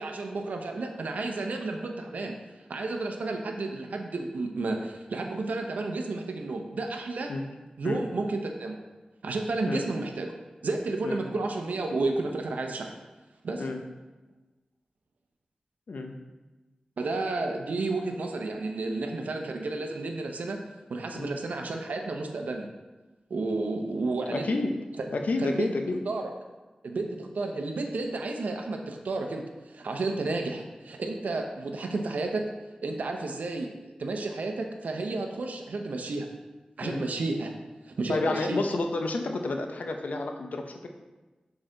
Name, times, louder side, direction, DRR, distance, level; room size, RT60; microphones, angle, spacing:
voice 1, 0.0-2.4 2.7-7.3 7.8-8.8 9.2-10.3 10.6-12.9 13.4-13.7 17.0-20.6 20.9-22.7 23.3-24.6 25.0-25.1 25.4-25.7 26.1-26.3 26.8-29.4 29.7-32.4 32.8-33.7 34.0-36.3 36.8-37.5 37.9-38.6, right 3 dB, 90° right, 3 dB, 0.6 m, -31 dB
voice 2, 15.9-16.2 21.1-21.3 24.3-24.8 25.1-26.0 36.8-37.0 38.1-40.9, left 2 dB, 80° left, 4 dB, 0.6 m, -30 dB
6.3 x 4.8 x 3.8 m, 1.2 s
cardioid pair, 50°, 3 cm